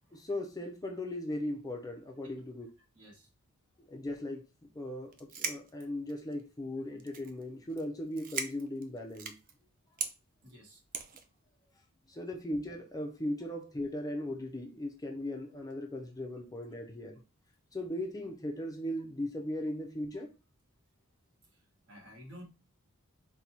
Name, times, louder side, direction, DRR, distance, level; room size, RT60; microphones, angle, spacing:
voice 1, 0.1-2.7 3.9-4.5 4.7-9.4 12.1-17.2 17.7-20.3, left 1 dB, 15° left, 0.5 m, -38 dB
voice 2, 2.9-3.3 10.4-10.8 21.5-22.4, equal, 55° right, 1.6 m, -53 dB
sound 1, 5.1-6.4 7.0-7.4 7.7-7.8 8.1-9.5 10.0-10.1 10.9-11.3, right 6 dB, 40° right, 0.5 m, -38 dB
4.0 x 2.3 x 4.4 m
head